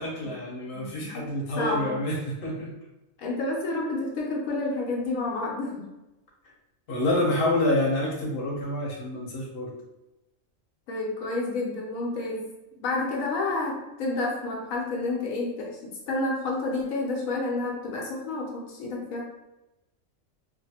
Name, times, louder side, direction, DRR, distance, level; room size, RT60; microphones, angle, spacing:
voice 1, 0.0-2.7 6.9-9.7, left 1 dB, 50° left, -3 dB, 0.9 m, -27 dB
voice 2, 0.7-2.0 3.2-5.9 10.9-12.5 12.8-19.2, left 2 dB, 90° left, -2 dB, 1.1 m, -30 dB
2.5 x 2.4 x 2.7 m, 0.97 s
omnidirectional pair, 1.4 m